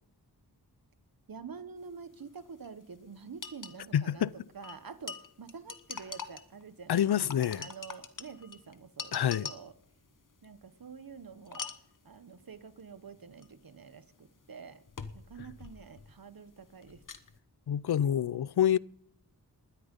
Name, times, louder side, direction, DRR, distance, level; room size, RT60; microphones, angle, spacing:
voice 1, 1.3-4.3 4.5-9.7 10.4-11.7 12.0-14.8 15.1-17.0, right 6 dB, 65° right, 1.2 m, -47 dB
sound 1, 2.4-2.5 2.6-2.7 3.4-3.8 4.6-6.6 7.0-9.8 11.4-12.0 13.4-13.5 14.9-16.2 16.5-17.4, left 5 dB, 55° left, 1.2 m, -43 dB
voice 2, 3.9-4.3 6.9-7.7 9.1-9.5 17.7-18.8, left 10 dB, 80° left, 0.5 m, -27 dB
19.5 x 12.5 x 5.4 m
wide cardioid pair, 95°, 38 cm